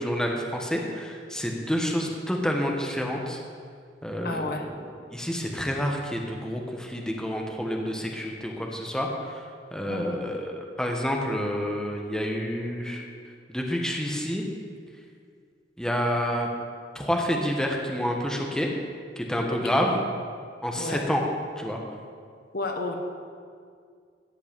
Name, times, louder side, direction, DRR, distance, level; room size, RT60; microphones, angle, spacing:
voice 1, 0.0-3.4 4.0-4.9 5.1-9.4 9.7-13.0 13.5-14.4 15.8-16.5 16.9-18.7 19.2-20.0 20.6-21.2 21.6-21.8, equal, 5° left, 0 dB, 1.2 m, -28 dB
voice 2, 4.2-4.7 9.9-10.2 19.5-19.9 20.8-21.0 22.5-22.9, left 2 dB, 55° left, 3 dB, 1.2 m, -32 dB
13.5 x 5.9 x 8.8 m, 2.1 s
head